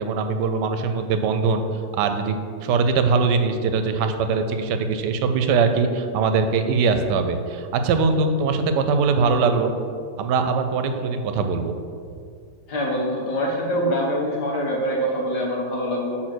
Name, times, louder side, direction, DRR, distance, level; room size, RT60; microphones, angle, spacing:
voice 1, 0.0-1.6 2.0-9.7 10.2-11.7, right 4 dB, 85° right, 7 dB, 1.2 m, -21 dB
voice 2, 12.7-16.2, equal, 75° left, -2 dB, 1.8 m, -24 dB
6.4 x 4.0 x 6.1 m, 2.2 s
omnidirectional pair, 1.8 m